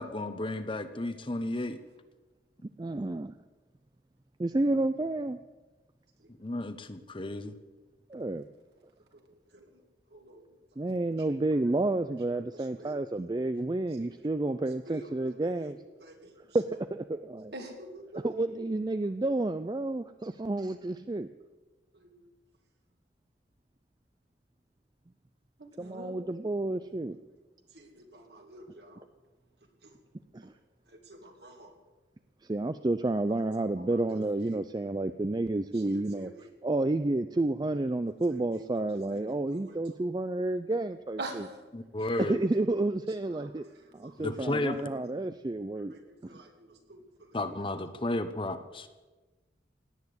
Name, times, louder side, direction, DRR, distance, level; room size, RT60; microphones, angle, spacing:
voice 1, 0.0-1.8 6.4-7.5 41.7-42.4 44.2-44.8 47.3-48.9, left 1 dB, 30° left, 10 dB, 0.9 m, -33 dB
voice 2, 2.8-3.3 4.4-5.4 8.1-8.4 10.8-15.8 16.5-16.6 16.9-17.5 18.2-21.3 25.8-27.2 30.3-30.5 32.4-36.3 36.6-41.2 42.2-43.6 43.9-45.9, right 2 dB, 25° right, 11 dB, 0.4 m, -30 dB
voice 3, 9.1-9.8 10.1-11.6 12.3-13.0 13.9-16.6 17.5-18.6 21.9-22.3 25.6-26.3 27.7-29.1 29.8-30.0 30.9-31.7 33.3-33.5 33.8-34.6 35.7-36.5 37.9-40.0 41.2-41.6 42.0-42.1 43.1-44.4 44.8-45.1 45.8-47.4 48.0-48.3, right 1 dB, 65° right, 3 dB, 2.5 m, -48 dB
17.5 x 9.7 x 8.1 m, 1.2 s
head